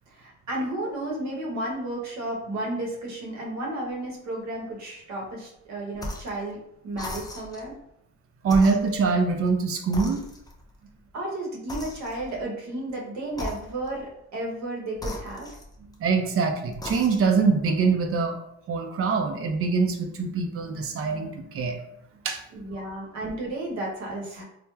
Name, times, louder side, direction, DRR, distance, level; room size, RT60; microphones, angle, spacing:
voice 1, 0.1-6.6 6.8-7.8 11.1-15.6 22.5-24.4, right 1 dB, 65° right, -2 dB, 0.9 m, -33 dB
sound 1, 6.0-6.4 6.9-7.7 8.4-9.6 9.9-10.7 11.7-12.4 13.3-14.0 15.0-16.1 16.7-17.4, left 1 dB, 15° left, 0.3 m, -37 dB
voice 2, 8.4-10.3 15.8-18.4 18.7-21.8 22.2-22.4 22.8-22.9, right 4 dB, 50° right, 4 dB, 0.5 m, -24 dB
3.0 x 2.1 x 2.3 m, 0.78 s
cardioid pair, 90°, 30 cm